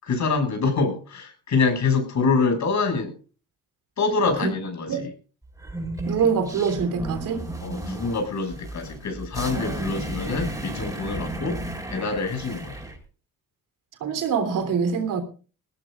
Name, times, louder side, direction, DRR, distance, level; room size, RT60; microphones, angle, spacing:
voice 1, 0.0-3.1 4.0-5.1 7.6-11.6 11.9-12.8, left 4 dB, 60° left, 5 dB, 6.7 m, -25 dB
sound 1, 5.6-13.0, right 1 dB, 10° right, 7.2 m, -33 dB
voice 2, 6.1-7.4 9.6-9.9 14.0-15.2, right 6 dB, 80° right, 8 dB, 3.4 m, -24 dB
22.0 x 17.5 x 2.5 m, 0.36 s
cardioid pair, 90°, 32 cm